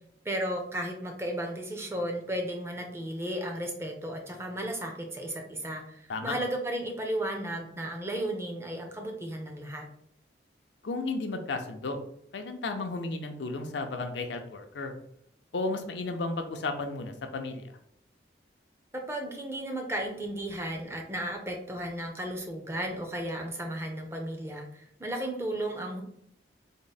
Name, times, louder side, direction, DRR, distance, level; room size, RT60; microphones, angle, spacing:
voice 1, 0.2-9.9 19.1-26.0, right 1 dB, 15° right, 2 dB, 0.5 m, -34 dB
voice 2, 10.8-12.0 12.3-14.9 15.5-17.6, left 3 dB, 80° left, 5 dB, 0.5 m, -33 dB
3.6 x 2.0 x 3.9 m, 0.70 s
head